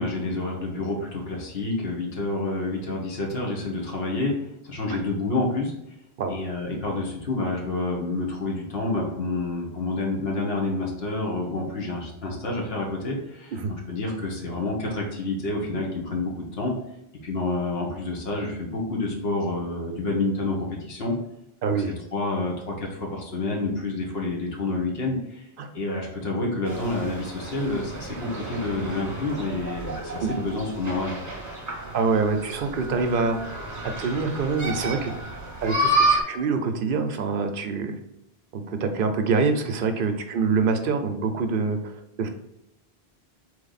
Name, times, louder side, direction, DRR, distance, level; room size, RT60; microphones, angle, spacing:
voice 1, 0.0-4.3 4.6-5.7 6.3-16.7 17.2-21.1 21.7-21.8 22.1-25.5 25.7-31.2, left 2 dB, 70° left, -1 dB, 1.3 m, -28 dB
voice 2, 21.6-21.9 25.6-25.7 30.2-30.3 31.9-33.6 34.0-35.1 35.6-38.0 38.5-41.8 42.2-42.3, right 4 dB, 60° right, 6 dB, 0.7 m, -25 dB
sound 1, 26.6-36.2, right 1 dB, 20° right, 0.8 m, -30 dB
4.1 x 3.2 x 4.0 m, 0.82 s
omnidirectional pair, 1.1 m